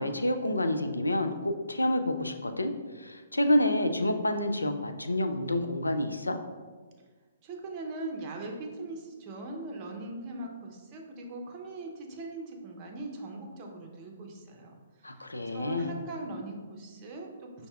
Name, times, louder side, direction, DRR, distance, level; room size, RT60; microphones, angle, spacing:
voice 1, 0.0-6.4 15.0-15.9, left 1 dB, 85° left, 7 dB, 0.3 m, -28 dB
voice 2, 7.4-17.7, right 2 dB, 30° right, 1 dB, 0.6 m, -40 dB
5.4 x 2.6 x 2.3 m, 1.4 s
figure-of-eight pair, 125°, 0 cm